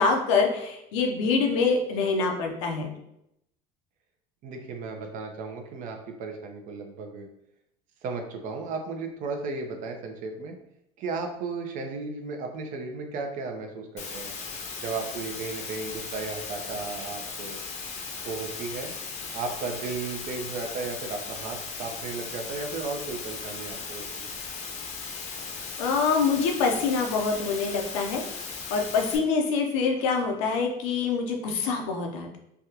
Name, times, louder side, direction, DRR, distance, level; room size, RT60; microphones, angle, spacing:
voice 1, 0.0-2.9 25.8-28.2 28.7-32.4, left 4 dB, 90° left, 2 dB, 0.6 m, -25 dB
voice 2, 4.4-7.3 8.0-10.5 11.0-14.3 14.8-17.6 18.2-18.9 19.3-24.3, right 4 dB, 60° right, 3 dB, 0.6 m, -35 dB
Water, 14.0-29.2, left 5 dB, 50° left, 0.6 m, -37 dB
3.4 x 2.3 x 2.8 m, 0.78 s
supercardioid pair, 100°, 15 cm